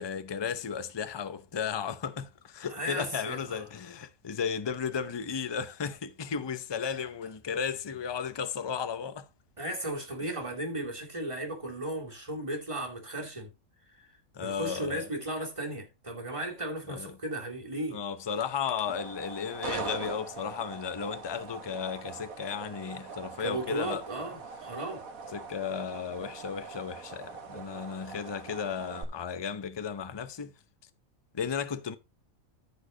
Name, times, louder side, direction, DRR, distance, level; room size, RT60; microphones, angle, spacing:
voice 1, 0.0-9.3 14.3-15.1 16.9-17.1 17.9-24.0 25.3-30.5 31.3-32.0, left 7 dB, 30° left, 0.5 m, -34 dB
voice 2, 2.7-3.6 9.6-13.5 13.9-14.1 14.4-18.0 23.4-25.0, right 1 dB, 20° right, 2.6 m, -35 dB
sound 1, 18.3-29.0, right 5 dB, 80° right, 1.8 m, -42 dB
14.0 x 5.0 x 3.9 m
omnidirectional pair, 1.4 m